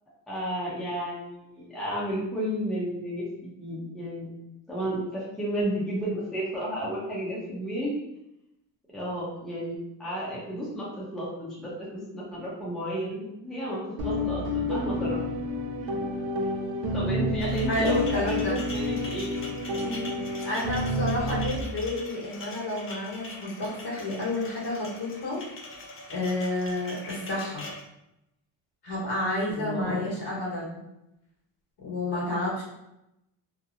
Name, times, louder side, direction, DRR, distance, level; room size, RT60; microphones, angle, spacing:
voice 1, 0.3-4.3 4.7-7.9 8.9-15.2 15.8-16.0 16.9-19.4 19.7-20.1 29.5-30.0, equal, ahead, -7 dB, 0.7 m, -32 dB
sound 1, 14.0-21.6, left 1 dB, 65° right, 0.5 m, -29 dB
sound 2, 17.4-27.8, left 2 dB, 35° left, 0.4 m, -42 dB
voice 2, 17.7-18.6 20.4-25.4 26.1-27.7 28.8-30.8 31.8-32.6, left 2 dB, 65° left, -6 dB, 1.4 m, -30 dB
2.8 x 2.2 x 2.5 m, 0.87 s
cardioid pair, 110°, 43 cm